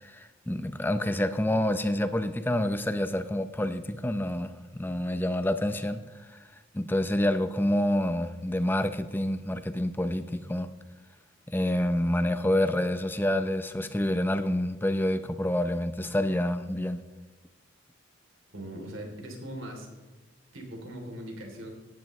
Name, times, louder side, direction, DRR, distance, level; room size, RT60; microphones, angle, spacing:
voice 1, 0.0-6.0 6.3-6.4 6.7-10.7 11.5-17.0, left 1 dB, 10° left, 10 dB, 0.6 m, -28 dB
voice 2, 18.5-19.9 20.5-21.7, right 1 dB, 75° right, 2 dB, 3.1 m, -40 dB
16.5 x 10.5 x 3.2 m, 1.3 s
head